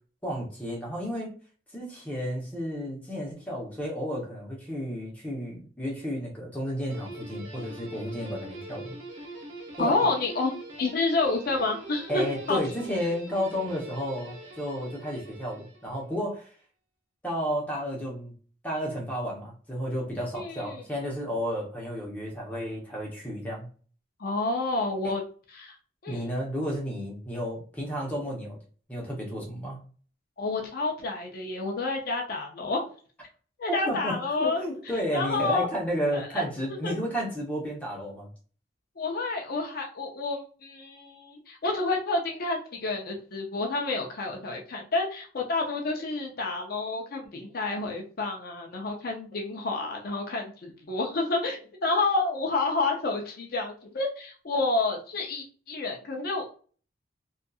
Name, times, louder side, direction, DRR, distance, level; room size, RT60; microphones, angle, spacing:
voice 1, 0.2-1.3 1.7-8.9 9.8-9.9 12.1-16.5 17.2-18.3 18.6-23.7 25.0-25.1 26.1-28.6 28.9-29.8 33.7-38.3, equal, 10° left, -3 dB, 0.8 m, -32 dB
Guitar, 6.9-16.2, right 1 dB, 80° right, 0.8 m, -43 dB
voice 2, 9.8-10.5 10.8-12.6 20.3-20.8 24.2-25.2 25.6-25.8 26.0-26.3 30.4-32.9 33.6-34.6 35.1-35.7 36.1-37.0 39.0-56.5, left 3 dB, 50° left, 1 dB, 0.5 m, -29 dB
2.7 x 2.4 x 2.3 m, 0.41 s
head